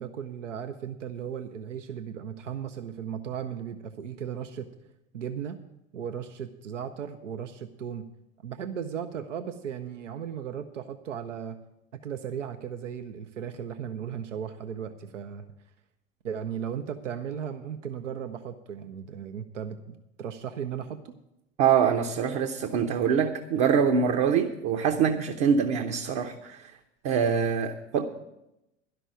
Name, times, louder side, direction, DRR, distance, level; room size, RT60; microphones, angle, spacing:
voice 1, 0.0-4.7 5.1-5.6 5.9-8.1 8.4-11.6 11.9-15.5 16.2-21.2, right 8 dB, 85° right, 8 dB, 0.7 m, -36 dB
voice 2, 21.6-26.7 27.0-28.1, right 7 dB, 55° right, 3 dB, 1.0 m, -24 dB
11.5 x 6.1 x 9.0 m, 0.90 s
hypercardioid pair, 80°, 36 cm